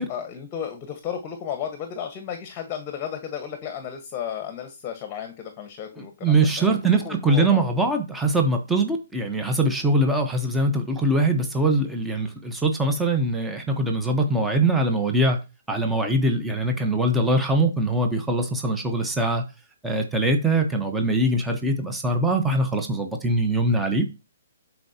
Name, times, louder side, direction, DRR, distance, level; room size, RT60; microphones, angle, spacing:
voice 1, 0.1-7.6, left 8 dB, 25° left, 1.4 m, -34 dB
voice 2, 6.2-15.4 15.7-19.4 19.8-24.2, right 2 dB, 5° right, 1.1 m, -22 dB
12.0 x 4.6 x 2.9 m
hypercardioid pair, 140°, 0 cm